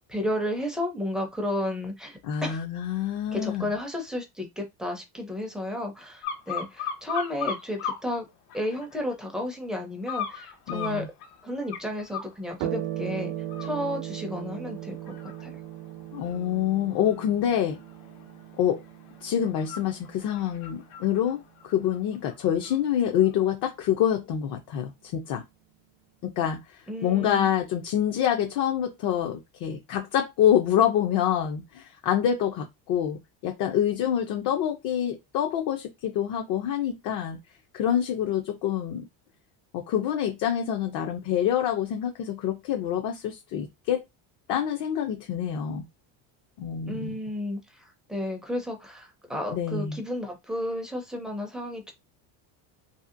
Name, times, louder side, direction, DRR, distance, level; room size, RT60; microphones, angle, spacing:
voice 1, 0.1-2.6 3.3-8.3 8.5-11.1 11.4-13.3 13.6-15.1 15.4-15.5 26.9-27.5 46.9-51.9, left 1 dB, ahead, 0.4 m, -32 dB
voice 2, 2.2-3.7 10.7-11.1 16.1-17.8 18.6-18.8 19.2-25.4 26.2-37.4 37.7-39.1 39.7-44.0 44.5-45.9 46.6-47.2 49.5-50.0, left 10 dB, 50° left, 0.5 m, -26 dB
sound 1, 6.2-8.0 8.5-9.1 10.1-12.3 12.8-13.1 13.4-22.8 23.2-23.3, left 7 dB, 75° left, 1.0 m, -38 dB
sound 2, 12.6-21.5, right 13 dB, 65° right, 0.6 m, -38 dB
2.8 x 2.8 x 2.5 m
cardioid pair, 150°, 46 cm